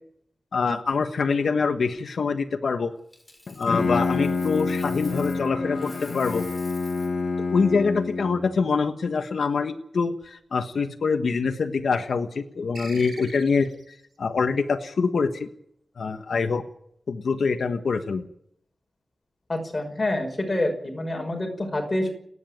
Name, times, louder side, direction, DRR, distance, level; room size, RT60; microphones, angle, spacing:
voice 1, 0.5-2.9 3.6-6.4 7.5-15.5 16.0-16.6 17.1-18.3, left 5 dB, 80° left, 6 dB, 1.4 m, -25 dB
Coin (dropping), 3.1-5.5 5.7-7.2 10.0-10.2, left 1 dB, 10° left, 6.6 m, -48 dB
Bowed string instrument, 3.5-8.5, left 4 dB, 65° left, 2.1 m, -27 dB
sound 1, 12.7-13.9, right 1 dB, 55° right, 7.4 m, -41 dB
voice 2, 19.5-22.1, left 1 dB, 25° left, 3 dB, 5.8 m, -27 dB
29.5 x 10.0 x 9.2 m, 0.71 s
wide cardioid pair, 135°, 0 cm